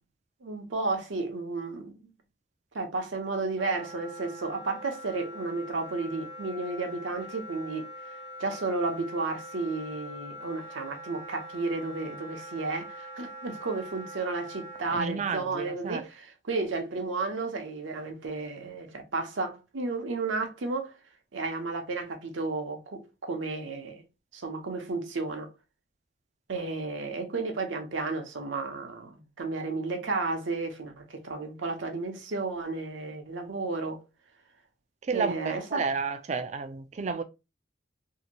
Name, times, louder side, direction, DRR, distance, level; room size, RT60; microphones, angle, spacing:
voice 1, 0.4-2.1 2.7-7.9 8.4-20.9 21.3-24.0 24.3-25.5 26.5-34.0 35.1-35.8, right 3 dB, 80° right, 0.7 m, -33 dB
Wind instrument woodwind instrument, 3.6-14.8, equal, 75° left, 1.1 m, -43 dB
voice 2, 14.9-16.0 35.1-37.2, right 5 dB, 35° right, 0.3 m, -31 dB
2.7 x 2.5 x 2.7 m
head